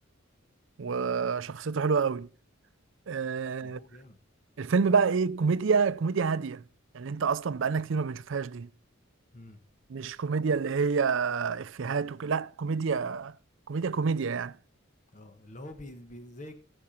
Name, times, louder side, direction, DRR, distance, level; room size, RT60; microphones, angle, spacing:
voice 1, 0.8-2.3 3.1-3.8 4.6-6.6 6.9-8.7 9.9-13.4 13.7-14.6, right 5 dB, 65° right, 0.5 m, -28 dB
voice 2, 3.6-4.2 9.3-9.6 15.1-16.6, left 1 dB, 35° left, 1.3 m, -46 dB
15.5 x 7.1 x 4.3 m
head